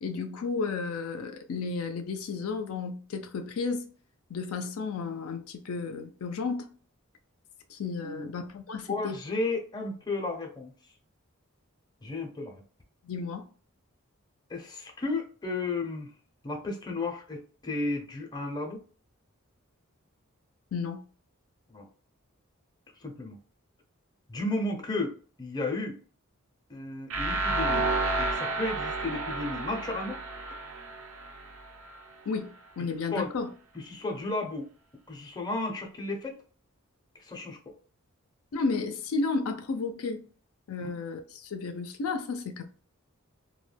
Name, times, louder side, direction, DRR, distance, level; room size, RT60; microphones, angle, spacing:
voice 1, 0.0-3.8 4.3-6.7 7.7-9.2 13.0-13.4 20.7-21.0 32.3-33.5 38.5-40.2 40.7-42.6, left 4 dB, 80° left, 0.4 m, -33 dB
voice 2, 8.0-8.3 8.9-10.7 12.0-12.6 14.5-16.1 16.4-18.8 21.7-21.9 23.0-23.4 24.3-26.0 26.7-27.9 28.2-30.2 33.1-33.3 33.7-34.7 35.1-36.4 37.1-37.7, left 2 dB, 20° left, 0.5 m, -33 dB
sound 1, 27.1-32.0, right 2 dB, 75° right, 0.6 m, -31 dB
2.2 x 2.1 x 3.2 m
head